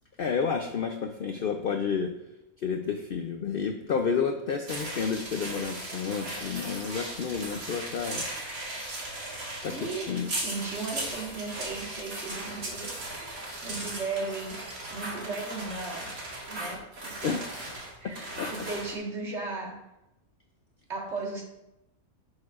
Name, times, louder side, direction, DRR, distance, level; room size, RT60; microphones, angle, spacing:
voice 1, 0.2-2.1 2.6-8.3 9.6-10.3 17.2-17.5 18.0-18.1 18.4-18.5, left 6 dB, 70° left, 5 dB, 0.5 m, -30 dB
sound 1, 4.7-19.0, right 1 dB, 75° right, 2.2 m, -37 dB
voice 2, 9.3-10.1 10.3-13.0 13.3-14.6 14.9-16.1 16.5-17.3 18.0-19.8 20.9-21.4, right 3 dB, 50° right, -2 dB, 1.8 m, -36 dB
10.5 x 6.5 x 2.4 m, 0.90 s
omnidirectional pair, 1.5 m